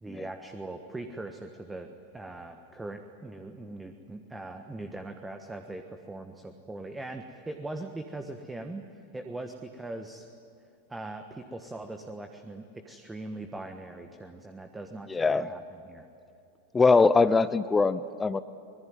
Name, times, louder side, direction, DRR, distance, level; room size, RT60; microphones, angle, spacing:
voice 1, 0.0-8.9 9.1-10.3 10.9-16.1, right 2 dB, 10° right, 7 dB, 1.4 m, -41 dB
voice 2, 15.1-15.5 16.7-18.4, left 4 dB, 15° left, 14 dB, 0.6 m, -22 dB
25.5 x 20.5 x 9.4 m, 2.9 s
figure-of-eight pair, 90°, 0 cm